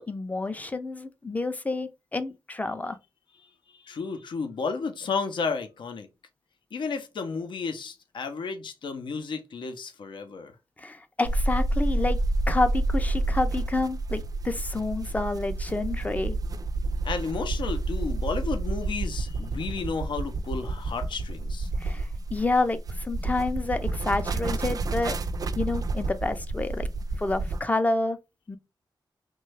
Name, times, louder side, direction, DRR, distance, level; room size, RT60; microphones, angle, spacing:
voice 1, 0.1-3.0 10.8-12.2 12.5-16.4 21.8-25.1 25.6-26.9 27.2-28.2 28.5-28.6, left 2 dB, 20° left, 0.4 m, -29 dB
voice 2, 3.8-6.1 6.7-10.5 17.0-21.7, left 4 dB, 75° left, 0.6 m, -32 dB
sound 1, 11.2-27.6, right 2 dB, 50° right, 0.3 m, -29 dB
3.1 x 2.2 x 3.2 m
wide cardioid pair, 95°, 8 cm